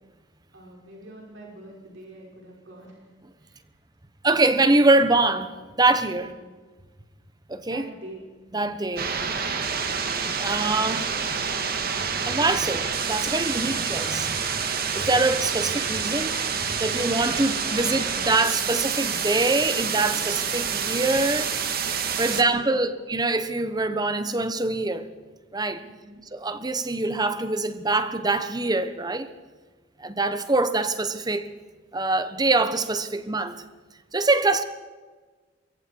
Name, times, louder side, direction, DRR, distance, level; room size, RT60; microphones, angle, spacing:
voice 1, 0.5-3.7 6.1-6.5 7.6-8.2 22.2-22.9 25.8-26.2, right 1 dB, 75° right, 5.8 m, -45 dB
voice 2, 4.2-6.4 7.5-7.9 8.5-9.1 10.4-11.1 12.3-14.6 14.9-21.5 22.2-25.1 25.5-25.8 26.3-29.3 30.0-31.5 31.9-33.6 34.1-34.6, right 2 dB, 20° right, 1.2 m, -24 dB
sound 1, 9.0-22.4, right 6 dB, 50° right, 2.0 m, -28 dB
27.0 x 22.5 x 4.8 m
head